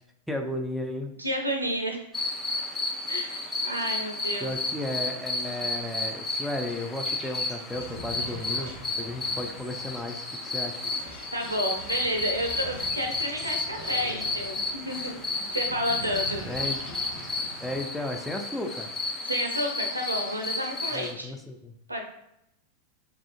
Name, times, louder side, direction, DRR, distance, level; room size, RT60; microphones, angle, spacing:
voice 1, 0.3-1.1 4.4-10.8 16.4-17.0 17.6-18.9 20.9-21.7, left 1 dB, ahead, 3 dB, 0.3 m, -34 dB
voice 2, 1.2-2.0 3.1-4.5 11.3-16.4 19.2-21.3 21.9-22.1, equal, 85° right, 4 dB, 0.5 m, -31 dB
sound 1, 2.1-21.1, left 2 dB, 15° left, 0.7 m, -32 dB
sound 2, 7.7-17.8, right 1 dB, 85° left, 1.2 m, -43 dB
3.3 x 2.4 x 2.4 m, 0.81 s
figure-of-eight pair, 90°, 0 cm